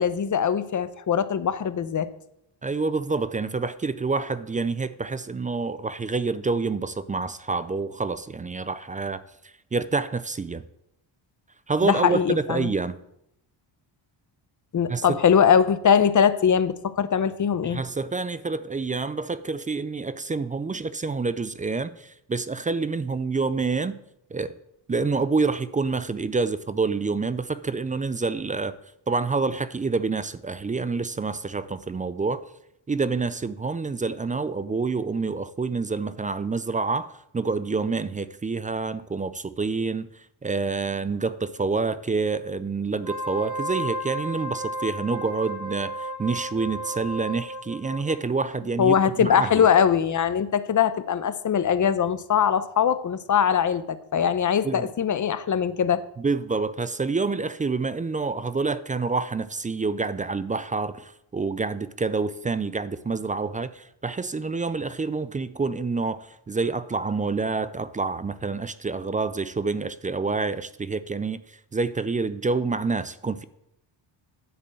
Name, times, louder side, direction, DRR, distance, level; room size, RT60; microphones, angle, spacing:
voice 1, 0.0-2.1 11.8-12.7 14.7-17.8 48.8-56.0, left 8 dB, 40° left, 13 dB, 0.7 m, -22 dB
voice 2, 2.6-10.6 11.7-13.0 14.9-15.2 17.6-24.0 24.3-24.5 24.9-28.8 29.1-32.5 32.9-49.7 54.6-54.9 56.2-73.4, right 4 dB, 20° right, 14 dB, 0.4 m, -27 dB
Wind instrument woodwind instrument, 43.0-48.2, right 1 dB, 55° right, 1.6 m, -33 dB
10.5 x 4.3 x 7.7 m, 0.77 s
cardioid pair, 85°, 47 cm